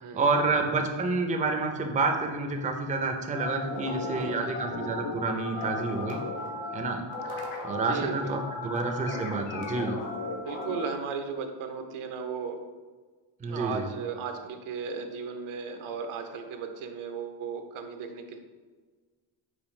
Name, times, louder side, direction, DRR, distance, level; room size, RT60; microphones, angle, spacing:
voice 1, 0.1-6.2 6.7-7.0 7.6-10.0 13.4-13.9, right 3 dB, 15° right, 3 dB, 0.4 m, -29 dB
sound 1, 3.3-10.9, left 2 dB, 65° left, 1.1 m, -36 dB
voice 2, 3.8-4.7 5.5-6.0 6.5-7.0 7.4-7.5 7.8-8.8 10.4-12.6 13.5-18.4, right 5 dB, 75° right, 5 dB, 0.7 m, -37 dB
5.1 x 3.1 x 3.1 m, 1.4 s
cardioid pair, 95°, 50 cm